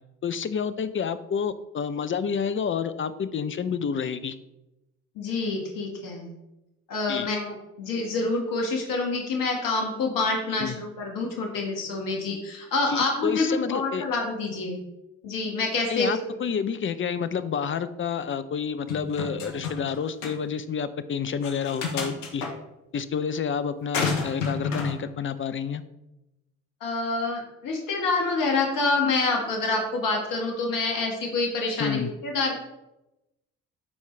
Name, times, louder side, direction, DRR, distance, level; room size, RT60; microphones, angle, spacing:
voice 1, 0.2-4.4 7.1-7.3 10.6-10.8 12.9-14.0 15.9-22.4 22.9-25.8 31.8-32.1, left 6 dB, 35° left, 13 dB, 0.7 m, -29 dB
voice 2, 5.2-6.3 6.9-14.8 15.2-16.4 26.8-32.5, left 3 dB, 60° left, 1 dB, 2.0 m, -27 dB
sound 1, 18.9-19.9 20.2-20.3 21.4-22.5 23.9-24.9, left 5 dB, 85° left, 1.2 m, -29 dB
12.5 x 4.8 x 3.3 m, 0.94 s
hypercardioid pair, 50°, 37 cm